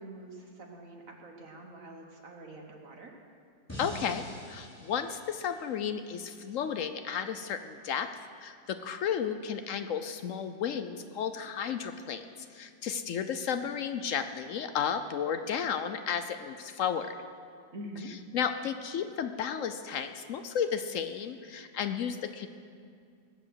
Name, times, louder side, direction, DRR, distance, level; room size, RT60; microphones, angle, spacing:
voice 1, 0.0-3.1 17.7-18.1, right 1 dB, 50° right, 2 dB, 1.5 m, -45 dB
sound 1, 3.7-6.8, equal, 10° left, 3.1 m, -46 dB
voice 2, 3.8-8.1 8.4-12.2 12.5-17.1 18.1-22.5, left 7 dB, 75° left, 9 dB, 0.7 m, -33 dB
20.5 x 7.7 x 6.3 m, 2.3 s
omnidirectional pair, 2.0 m